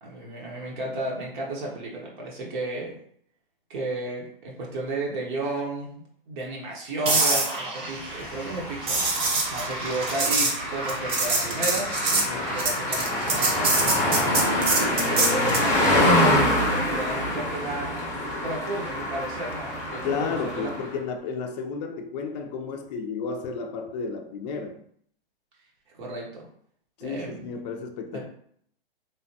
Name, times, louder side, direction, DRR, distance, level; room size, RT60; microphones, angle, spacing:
voice 1, 0.0-3.0 3.7-9.0 9.5-11.9 12.5-14.3 14.7-17.9 18.4-20.7 26.0-26.5 27.0-27.5 28.1-28.2, right 2 dB, 50° right, -2 dB, 0.9 m, -33 dB
sound 1, 7.1-15.7 19.9-20.1, right 3 dB, 20° right, 0.5 m, -26 dB
sound 2, 8.0-20.9, left 1 dB, 10° left, 0.8 m, -26 dB
voice 2, 12.1-12.5 20.0-24.8 27.0-28.3, left 5 dB, 45° left, 5 dB, 0.4 m, -32 dB
3.2 x 2.1 x 2.7 m, 0.64 s
hypercardioid pair, 130°, 29 cm